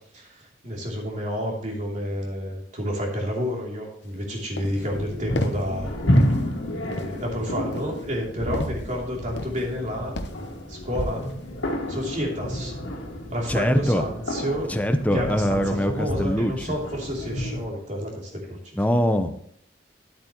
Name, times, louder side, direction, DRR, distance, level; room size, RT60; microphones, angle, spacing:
voice 1, 0.1-5.9 6.9-10.2 10.7-11.3 11.9-12.7 13.3-14.7 15.1-18.8, equal, 40° right, -1 dB, 2.9 m, -30 dB
sound 1, 4.0-4.2 4.6-4.9 5.4-5.8 6.1-6.5 6.9-7.3 7.7-8.9 9.4-9.8 10.2-10.5 11.0-11.4, left 2 dB, 60° left, 0.9 m, -35 dB
sound 2, 4.6-17.7, equal, 90° left, 2.0 m, -29 dB
voice 2, 13.5-14.0 14.7-16.8 18.8-19.5, equal, 10° left, 8 dB, 0.7 m, -23 dB
10.5 x 8.3 x 3.0 m, 0.69 s
head